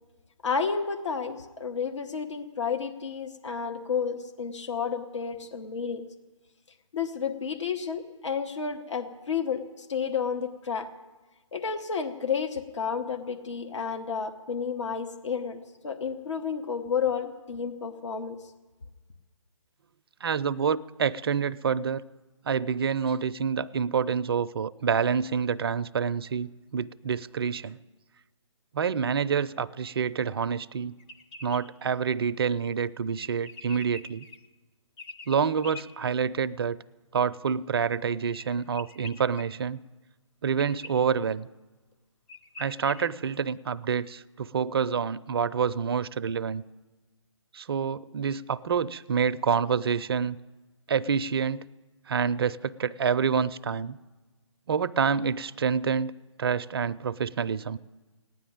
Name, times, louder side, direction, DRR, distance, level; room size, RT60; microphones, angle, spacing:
voice 1, 0.4-6.0 6.9-10.9 11.5-18.4, left 6 dB, 65° left, 6 dB, 1.1 m, -31 dB
voice 2, 20.2-22.0 22.4-27.8 28.7-30.9 31.4-34.3 35.3-36.8 37.1-39.8 40.4-41.5 42.6-46.6 47.5-50.4 50.9-51.6 52.1-54.0 54.7-56.1 56.4-57.8, right 6 dB, 50° right, 14 dB, 0.5 m, -27 dB
sound 1, 31.0-31.6 33.2-34.4 35.0-35.8 38.3-39.4 40.6-40.9 41.9-42.0 42.3-43.0, left 3 dB, 15° left, 0.7 m, -44 dB
15.5 x 10.0 x 8.8 m, 1.2 s
figure-of-eight pair, 145°, 16 cm